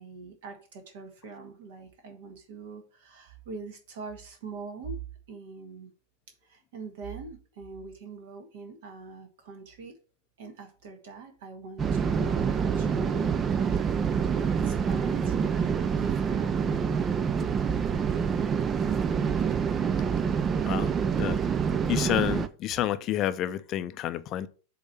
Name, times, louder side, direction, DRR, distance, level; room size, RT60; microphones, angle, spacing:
voice 1, 0.0-5.0 5.3-5.9 6.4-10.0 10.4-14.4 14.6-16.6, right 4 dB, 55° right, 1.7 m, -43 dB
sound 1, 11.8-22.5, right 6 dB, 25° right, 0.5 m, -26 dB
voice 2, 21.9-24.5, left 12 dB, 35° left, 0.6 m, -29 dB
8.0 x 3.2 x 5.6 m
figure-of-eight pair, 90°, 0 cm